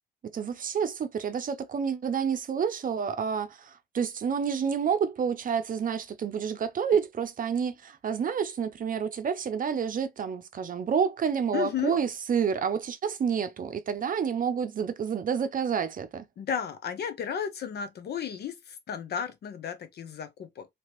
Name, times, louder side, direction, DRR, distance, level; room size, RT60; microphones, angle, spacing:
voice 1, 0.3-16.3, right 7 dB, 45° right, 0.6 m, -29 dB
voice 2, 11.5-12.0 16.4-20.7, left 8 dB, 55° left, 0.8 m, -33 dB
2.9 x 2.8 x 3.0 m
supercardioid pair, 65°, 20 cm